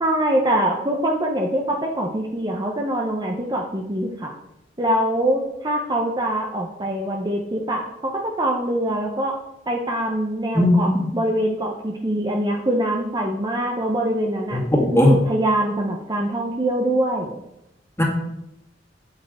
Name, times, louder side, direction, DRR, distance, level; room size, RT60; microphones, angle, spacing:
voice 1, 0.0-4.3 4.8-9.3 9.7-10.9 11.1-14.6 14.9-17.4, right 1 dB, 25° right, 0 dB, 0.9 m, -23 dB
voice 2, 10.5-11.1 14.5-15.2 18.0-18.1, left 1 dB, 15° left, -1 dB, 2.1 m, -17 dB
8.7 x 8.5 x 3.7 m, 0.85 s
head